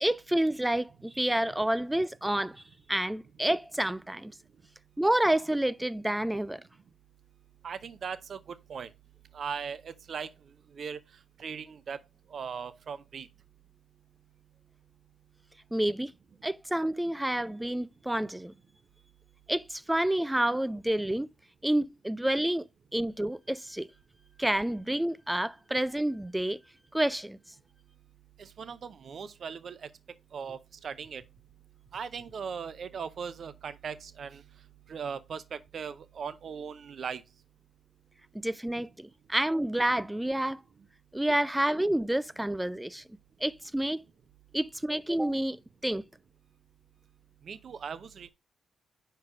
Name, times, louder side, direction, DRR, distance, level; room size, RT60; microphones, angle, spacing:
voice 1, 0.0-2.6 2.9-4.3 5.0-6.6 15.7-16.1 16.4-18.5 19.5-21.3 21.6-22.6 22.9-23.9 24.4-26.6 26.9-27.4 38.4-40.6 41.1-43.0 43.4-44.0 44.5-45.6 45.8-46.0, right 1 dB, 10° right, 0.4 m, -29 dB
voice 2, 7.6-8.9 9.3-10.3 10.7-11.0 11.4-12.0 12.3-13.3 28.4-29.9 30.3-31.2 31.9-34.4 34.9-37.2 47.4-48.3, right 6 dB, 60° right, 0.6 m, -39 dB
4.8 x 4.6 x 4.9 m
supercardioid pair, 55°, 0 cm